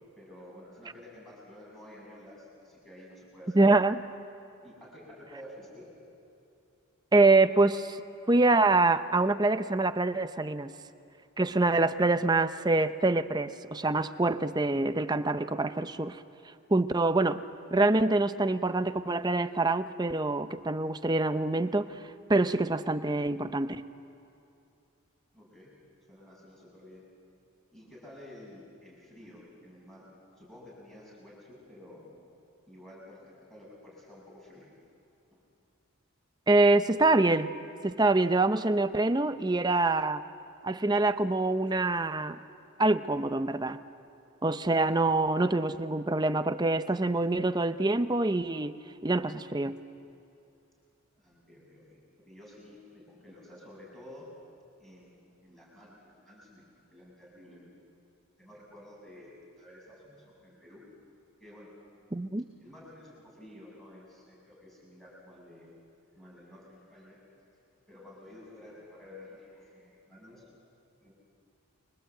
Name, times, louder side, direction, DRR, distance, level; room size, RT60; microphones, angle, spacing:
voice 1, 0.2-3.7 4.6-5.9 25.3-25.7 26.1-27.0 27.7-30.1 30.4-32.1 32.7-34.7 35.3-35.4 51.2-52.0 52.2-54.3 54.8-56.6 56.9-57.7 58.4-60.8 61.4-61.7 62.6-65.7 66.1-67.2 67.9-70.5 71.0-71.1, left 1 dB, ahead, -5 dB, 6.4 m, -51 dB
voice 2, 3.5-4.0 7.1-8.0 8.3-10.7 11.4-16.2 16.7-17.4 17.7-22.0 22.3-23.8 36.5-37.5 37.8-40.2 40.6-42.4 42.8-43.8 44.4-48.8 49.0-49.8 62.1-62.4, right 2 dB, 20° right, 11 dB, 0.6 m, -25 dB
29.5 x 23.0 x 7.9 m, 2.6 s
head